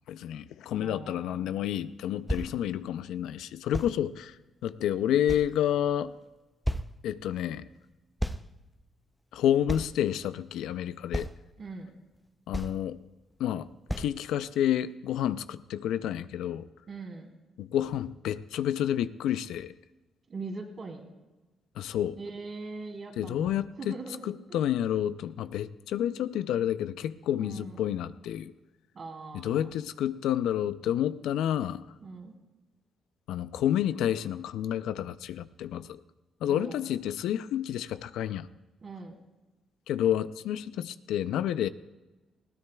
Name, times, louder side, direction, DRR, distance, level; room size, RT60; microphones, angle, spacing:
voice 1, 0.1-4.4 4.6-6.1 7.0-7.7 9.3-11.3 12.5-13.0 13.4-13.7 14.0-16.7 17.6-19.7 21.8-22.2 23.2-24.0 24.2-28.5 29.3-31.9 33.3-36.0 36.4-38.5 39.9-41.7, left 11 dB, 85° left, 14 dB, 0.4 m, -29 dB
voice 2, 0.7-1.5 11.6-11.9 16.9-17.3 20.3-21.1 22.2-24.6 27.4-27.9 28.9-29.7 32.0-32.3 36.5-36.8 38.8-39.2, right 3 dB, 45° right, 2 dB, 2.8 m, -41 dB
sound 1, 1.7-1.8 2.3-2.5 3.7-4.0 4.7-4.8 5.3-5.9 6.3-6.4 6.7-6.9 8.2-8.5 8.8-8.9 9.7-9.9 10.5-10.6 11.1-11.5 12.1-12.2 12.5-12.9 13.3-13.4 13.9-14.1 14.7-14.8, equal, 5° left, 0.5 m, -32 dB
20.5 x 15.5 x 2.3 m, 1.1 s
cardioid pair, 90°, 0 cm